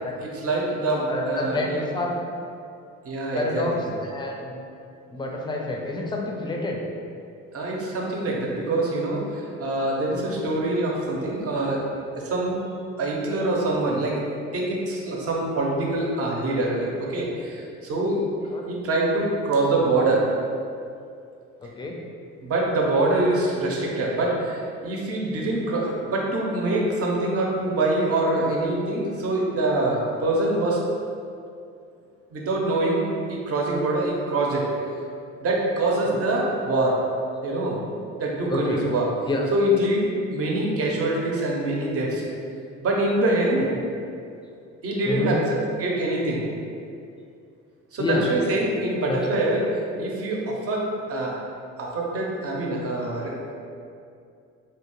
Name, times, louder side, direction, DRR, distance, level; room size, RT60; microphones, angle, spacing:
voice 1, 0.2-1.8 3.0-3.8 7.5-11.8 12.2-12.6 13.0-18.2 18.7-20.3 22.4-30.8 32.3-34.7 35.4-37.0 37.4-37.8 38.2-39.1 39.5-42.2 42.8-43.7 44.8-45.4 45.8-46.4 47.9-49.6 50.0-51.3 51.8-53.4, right 2 dB, 45° right, -2 dB, 0.7 m, -24 dB
voice 2, 1.1-2.2 3.3-4.5 5.1-6.8 10.1-10.2 18.5-18.7 21.6-22.0 36.0-36.2 38.5-38.8 39.3-39.5 45.0-45.4 48.0-48.3 49.1-49.2, left 2 dB, 15° left, 0 dB, 0.4 m, -28 dB
2.8 x 2.2 x 2.9 m, 2.5 s
supercardioid pair, 75°, 32 cm